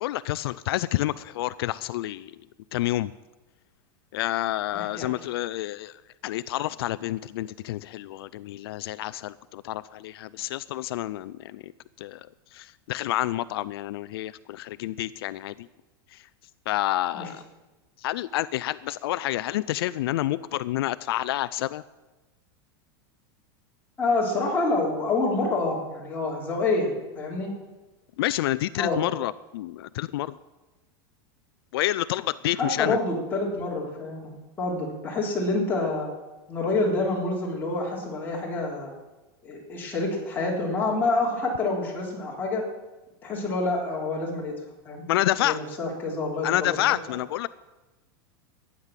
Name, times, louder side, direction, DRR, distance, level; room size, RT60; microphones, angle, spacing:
voice 1, 0.0-2.3 2.7-3.1 4.1-11.7 12.0-15.7 16.1-16.3 16.7-17.4 18.0-21.8 28.2-30.3 31.7-33.0 45.1-45.6 46.4-47.5, left 15 dB, 75° left, 16 dB, 0.4 m, -29 dB
voice 2, 4.7-5.1 17.1-17.3 24.0-27.5 28.8-29.0 32.6-36.1 36.5-38.9 39.4-42.7 43.2-44.5 44.9-45.0 45.4-46.8 47.1-47.2, left 3 dB, 15° left, -4 dB, 3.5 m, -27 dB
13.5 x 9.7 x 7.4 m, 1.1 s
supercardioid pair, 160°, 13 cm